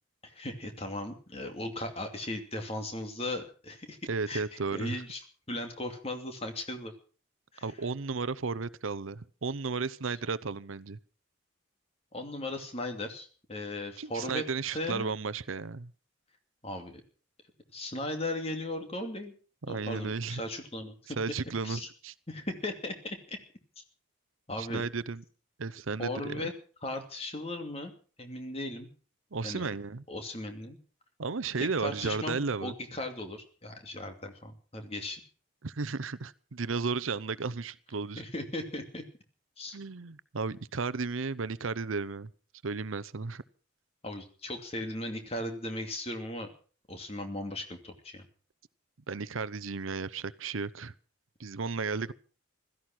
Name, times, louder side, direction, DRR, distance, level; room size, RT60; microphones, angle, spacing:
voice 1, 0.2-4.0 4.3-4.4 4.7-5.2 5.5-6.9 7.5-7.7 12.1-14.4 14.7-15.1 16.6-17.0 17.7-19.3 19.7-21.0 21.6-21.9 22.3-23.4 23.8-23.9 24.5-24.8 26.0-26.5 26.8-27.9 28.2-28.9 29.4-29.7 30.1-30.8 31.6-35.2 38.2-39.0 39.6-39.8 44.0-46.5 46.9-48.2, left 1 dB, 30° left, 2.6 m, -37 dB
voice 2, 4.1-5.0 7.6-11.0 14.0-15.9 19.6-20.4 21.2-22.1 24.6-25.2 25.6-26.5 29.3-30.0 31.2-32.7 35.6-38.2 39.7-42.3 42.6-43.4 49.1-50.9 51.4-52.1, right 4 dB, 80° right, 0.8 m, -34 dB
16.5 x 13.5 x 6.0 m
head